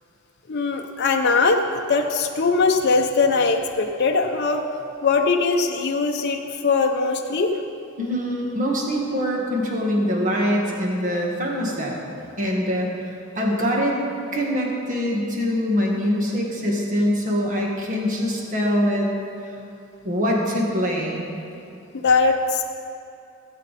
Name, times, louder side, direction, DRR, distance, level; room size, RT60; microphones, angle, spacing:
voice 1, 0.5-4.6 5.0-7.5 22.0-22.6, left 4 dB, 55° left, 3 dB, 0.6 m, -21 dB
voice 2, 8.0-12.0 12.4-13.9 14.3-19.1 19.4-19.5 20.0-21.2, equal, 40° right, -2 dB, 1.7 m, -23 dB
17.0 x 8.2 x 4.1 m, 2.7 s
head